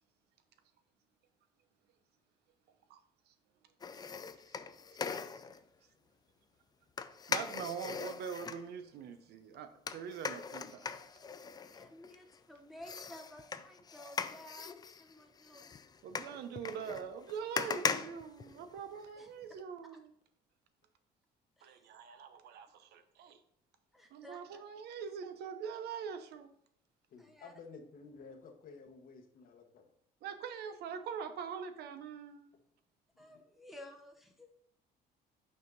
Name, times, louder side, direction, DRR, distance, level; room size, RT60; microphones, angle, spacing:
sound 1, 3.8-5.6 7.0-8.6 9.9-12.4 12.8-19.1 19.4-19.5, left 5 dB, 25° left, 0.4 m, -40 dB
voice 1, 7.3-10.9 16.0-20.1 21.6-23.4 24.1-26.5 30.2-32.5, right 7 dB, 75° right, 9 dB, 0.8 m, -43 dB
voice 2, 11.7-15.6 19.2-19.3 19.9-20.0 21.6-22.0 23.9-24.6 27.2-27.5 33.2-34.5, left 1 dB, ahead, 2 dB, 0.8 m, -54 dB
voice 3, 27.1-29.9 33.3-33.4, left 4 dB, 55° left, 5 dB, 1.1 m, -53 dB
5.7 x 4.6 x 3.9 m, 0.66 s
cardioid pair, 110°, 17 cm